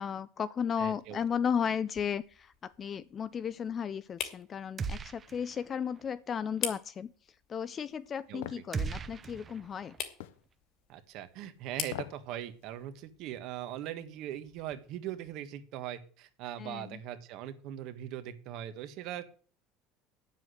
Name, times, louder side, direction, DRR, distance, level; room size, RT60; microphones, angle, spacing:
voice 1, 0.0-7.1 7.5-9.9 16.6-17.0, left 7 dB, 40° left, 15 dB, 0.6 m, -34 dB
sound 1, 0.6-15.4, left 8 dB, 55° left, 2.8 m, -46 dB
voice 2, 0.8-1.2 8.3-8.4 10.9-19.3, right 11 dB, 65° right, 10 dB, 1.6 m, -40 dB
sound 2, 4.8-5.7 6.0-6.1 8.7-10.0, right 5 dB, 35° right, 0.9 m, -38 dB
sound 3, 8.4-8.7 10.2-10.4 11.8-12.2 12.6-12.7, left 13 dB, 85° left, 0.8 m, -41 dB
9.7 x 7.5 x 7.9 m, 0.43 s
supercardioid pair, 90°, 0 cm